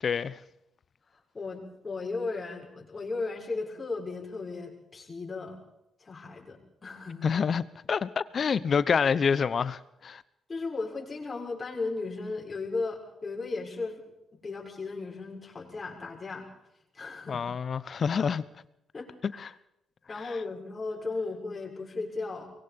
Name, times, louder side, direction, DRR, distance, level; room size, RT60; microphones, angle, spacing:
voice 1, 0.0-0.4 7.2-7.6 7.9-10.2 17.3-18.4 19.4-19.5 20.2-20.3, left 6 dB, 50° left, 1.0 m, -27 dB
voice 2, 1.3-5.6 6.0-7.4 10.5-14.0 14.4-16.5 16.9-17.4 18.9-19.4 20.1-22.5, left 3 dB, 35° left, 6.8 m, -36 dB
24.0 x 21.5 x 5.4 m
hypercardioid pair, 45°, 0 cm